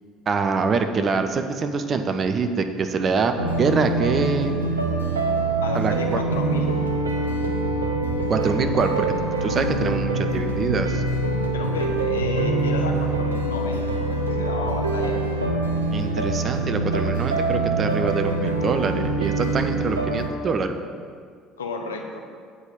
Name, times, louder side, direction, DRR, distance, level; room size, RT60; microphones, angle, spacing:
voice 1, 0.3-3.3 3.6-4.6 5.7-6.2 8.3-9.1 9.4-11.0 15.9-20.7, right 4 dB, 40° right, 7 dB, 0.7 m, -24 dB
sound 1, 3.4-20.3, right 2 dB, 85° right, 0.6 m, -24 dB
voice 2, 5.6-6.7 11.5-15.4 21.6-22.2, left 3 dB, 80° left, 2 dB, 0.8 m, -32 dB
8.2 x 5.0 x 7.1 m, 2.1 s
figure-of-eight pair, 55°, 0 cm